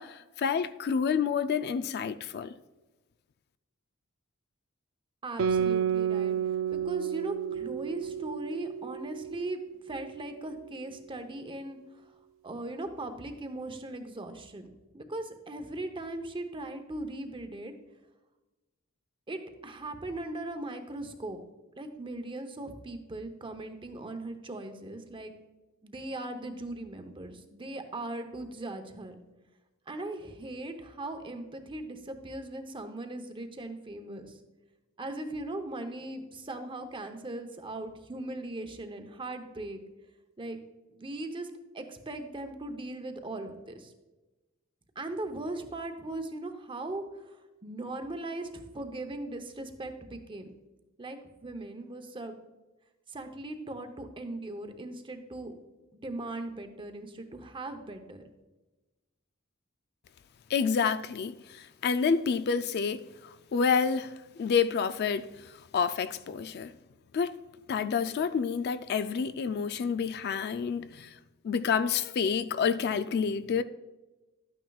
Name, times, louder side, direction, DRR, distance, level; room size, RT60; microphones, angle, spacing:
voice 1, 0.0-2.5 60.5-66.7 67.1-67.4 67.7-71.2 71.4-73.6, left 6 dB, 50° left, 0.3 m, -29 dB
voice 2, 5.2-9.6 9.8-12.1 12.4-14.7 14.9-17.7 19.3-21.4 21.8-25.3 25.8-29.2 29.9-34.4 35.0-39.8 40.4-40.6 40.9-41.5 41.7-43.9 45.0-50.5 51.0-52.4 53.1-55.5 56.0-58.2, right 2 dB, 25° right, 0.8 m, -39 dB
Guitar, 5.4-10.3, right 8 dB, 80° right, 0.5 m, -31 dB
12.0 x 9.2 x 2.3 m
head